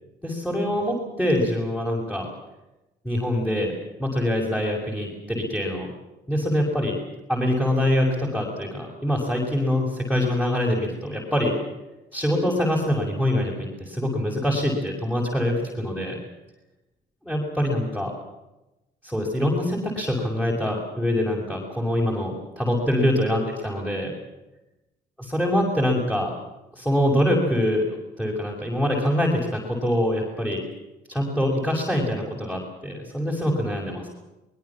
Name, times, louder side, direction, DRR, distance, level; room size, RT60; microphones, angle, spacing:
voice 1, 0.2-2.3 3.0-3.7 4.0-5.9 6.3-7.0 7.3-11.6 12.1-16.2 17.2-18.1 19.0-24.1 25.3-26.3 26.7-30.6 31.1-34.1, left 1 dB, 5° left, -2 dB, 6.3 m, -24 dB
24.0 x 21.5 x 7.4 m, 0.98 s
cardioid pair, 110°, 17 cm